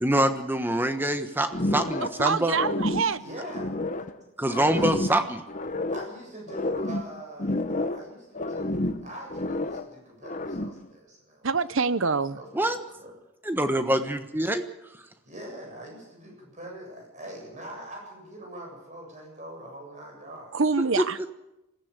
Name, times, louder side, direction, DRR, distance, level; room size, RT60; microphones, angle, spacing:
voice 1, 0.0-2.6 4.4-5.4 12.5-12.8 13.4-14.6 21.0-21.1, right 1 dB, 10° right, 1.3 m, -25 dB
sound 1, 1.5-2.2 2.5-4.2 4.5-6.2 6.5-8.1 8.3-9.9 10.2-10.9, left 2 dB, 35° left, 1.0 m, -30 dB
voice 2, 2.2-3.2 11.4-12.4 20.5-21.2, right 4 dB, 60° right, 0.8 m, -25 dB
voice 3, 3.1-3.7 4.7-5.0 5.9-11.8 12.3-13.1 13.9-14.1 15.2-20.5, equal, 35° right, 7.8 m, -43 dB
21.5 x 15.5 x 8.3 m
head